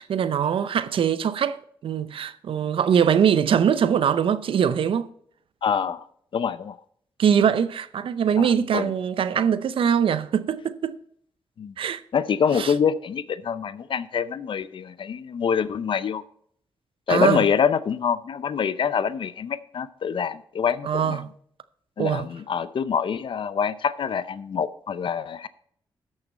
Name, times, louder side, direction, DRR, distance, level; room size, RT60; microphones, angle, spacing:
voice 1, 0.0-5.1 7.2-11.0 11.8-12.0 12.6-12.7 17.1-17.5 20.8-21.3 22.0-22.3, right 8 dB, 70° right, 0.6 m, -22 dB
voice 2, 5.6-6.0 6.3-6.8 8.4-8.9 11.6-11.7 12.1-16.2 17.1-21.2 22.0-25.5, left 7 dB, 60° left, 0.6 m, -25 dB
13.5 x 6.4 x 4.2 m
supercardioid pair, 55°, 10 cm